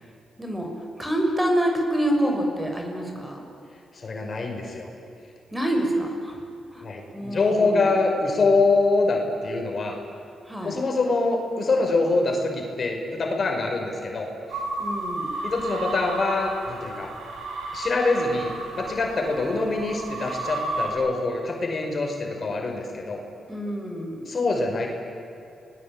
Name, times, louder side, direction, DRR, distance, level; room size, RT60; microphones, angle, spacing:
voice 1, 0.4-3.4 5.5-6.4 6.7-6.8 7.1-7.9 10.4-10.7 14.8-15.3 23.5-24.2, equal, 10° right, 2 dB, 6.5 m, -27 dB
voice 2, 3.9-4.9 6.8-10.0 10.6-14.3 15.4-17.1 17.7-23.2 24.3-24.9, left 3 dB, 50° left, 2 dB, 5.6 m, -24 dB
sound 1, 14.5-20.9, right 2 dB, 85° right, 6.4 m, -33 dB
29.5 x 20.5 x 9.0 m, 2.8 s
cardioid pair, 70°, 0 cm